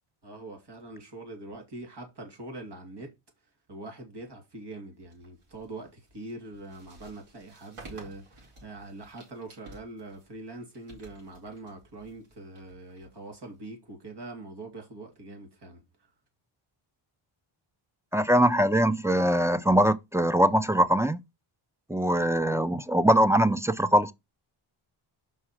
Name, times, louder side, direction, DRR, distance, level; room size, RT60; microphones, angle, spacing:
voice 1, 0.2-3.1 3.7-16.1, right 2 dB, 50° right, 3.0 m, -43 dB
sound 1, 5.0-13.7, right 2 dB, 75° right, 4.4 m, -53 dB
voice 2, 18.1-21.2 21.9-24.1, equal, 5° right, 0.4 m, -22 dB
5.6 x 4.8 x 5.9 m
wide cardioid pair, 120°, 50 cm